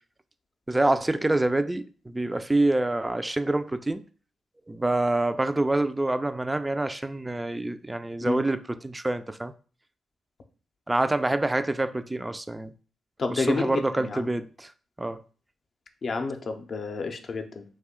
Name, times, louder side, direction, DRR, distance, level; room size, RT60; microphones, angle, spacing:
voice 1, 0.7-4.1 4.7-9.5 10.9-12.7 13.3-14.7 15.0-15.2, right 2 dB, 20° right, 0.3 m, -26 dB
voice 2, 13.2-14.3 16.0-17.6, left 4 dB, 55° left, 0.5 m, -30 dB
2.7 x 2.2 x 3.7 m
hypercardioid pair, 40°, 0 cm